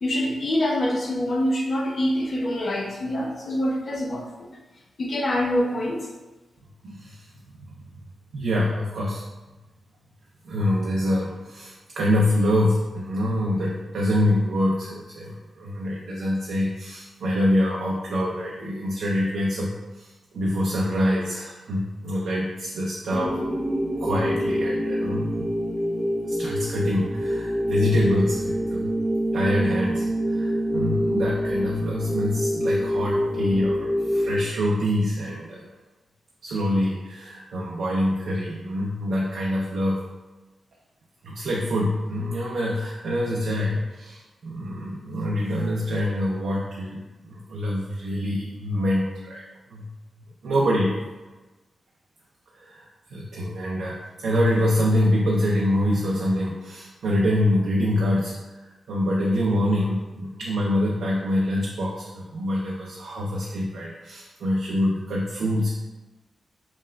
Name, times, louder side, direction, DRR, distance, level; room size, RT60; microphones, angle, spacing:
voice 1, 0.0-4.5 5.0-6.1, left 1 dB, 55° left, -1 dB, 0.7 m, -25 dB
voice 2, 6.8-7.3 7.6-7.7 8.3-9.2 10.4-23.4 24.0-25.5 26.3-28.9 29.3-35.7 36.4-40.0 41.2-49.4 49.7-49.9 50.4-51.0 52.5-65.7, left 1 dB, 80° right, -3 dB, 0.5 m, -25 dB
sound 1, 23.1-34.4, equal, 5° left, 0.6 m, -26 dB
5.6 x 2.3 x 2.2 m, 1.2 s
cardioid pair, 65°, 0 cm